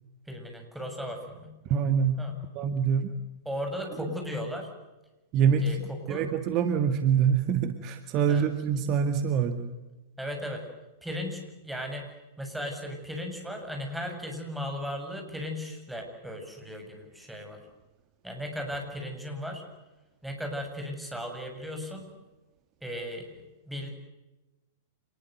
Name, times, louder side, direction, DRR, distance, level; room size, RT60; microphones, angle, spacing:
voice 1, 0.3-1.5 2.2-2.3 3.5-4.7 5.6-6.2 8.3-8.4 10.2-10.6 11.0-12.1 12.4-17.6 18.2-19.6 20.2-22.1 22.8-23.3 23.6-23.9, equal, 5° right, 3 dB, 7.6 m, -36 dB
voice 2, 1.7-2.3 2.6-3.1 4.0-4.1 5.3-5.7 6.1-9.7, right 7 dB, 40° right, 8 dB, 2.0 m, -25 dB
27.5 x 21.0 x 8.0 m, 1.1 s
figure-of-eight pair, 100°, 0 cm